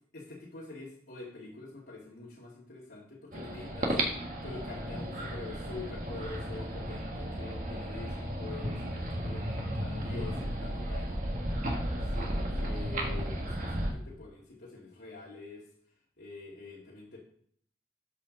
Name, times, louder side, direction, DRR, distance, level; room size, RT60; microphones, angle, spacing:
voice 1, 0.1-4.0 4.4-11.2 12.1-15.7 16.2-17.2, left 3 dB, 85° left, -6 dB, 2.3 m, -46 dB
sound 1, 3.3-13.9, equal, 45° right, 1.6 m, -34 dB
13.0 x 5.0 x 4.0 m, 0.62 s
head